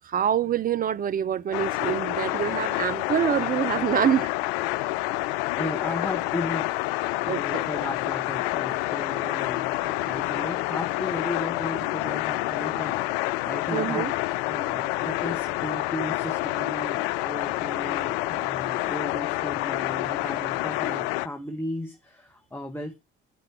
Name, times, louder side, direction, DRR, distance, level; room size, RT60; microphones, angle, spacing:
voice 1, 0.1-4.3 7.3-7.6 13.7-14.1, right 9 dB, 30° right, 0.5 m, -25 dB
sound 1, 1.5-21.3, left 19 dB, 65° left, 0.4 m, -28 dB
voice 2, 5.6-6.7 7.2-14.1 14.5-23.0, left 1 dB, 5° left, 1.1 m, -35 dB
9.4 x 4.8 x 4.5 m
figure-of-eight pair, 50°, 31 cm